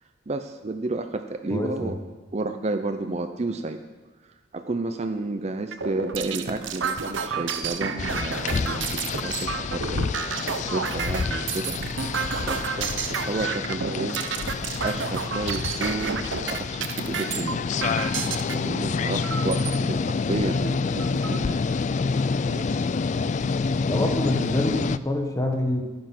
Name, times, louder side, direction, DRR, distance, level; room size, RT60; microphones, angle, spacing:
voice 1, 0.3-2.0 2.3-3.8 4.5-10.1 10.5-11.8 12.4-14.2 14.8-17.6 18.5-21.7 22.0-22.9, right 2 dB, 35° right, 7 dB, 0.6 m, -31 dB
voice 2, 1.5-2.0 20.3-20.4 23.8-25.8, left 1 dB, 15° left, 3 dB, 1.4 m, -26 dB
sound 1, 5.7-18.5 19.2-19.8 20.3-20.4 20.7-21.4, right 6 dB, 75° right, 0.8 m, -30 dB
sound 2, 8.0-25.0, left 4 dB, 40° left, 0.3 m, -28 dB
13.0 x 9.5 x 5.9 m, 1.2 s
head